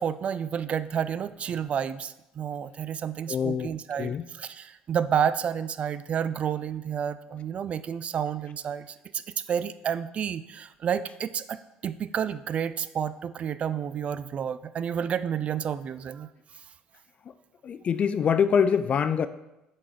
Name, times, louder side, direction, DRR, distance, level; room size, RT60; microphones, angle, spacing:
voice 1, 0.0-9.2 9.5-11.6 11.8-16.3, right 8 dB, 45° right, 14 dB, 0.3 m, -30 dB
voice 2, 3.3-3.7 4.0-4.2 17.6-19.3, left 7 dB, 45° left, 14 dB, 0.3 m, -24 dB
6.0 x 4.1 x 4.9 m, 0.92 s
supercardioid pair, 90°, 3 cm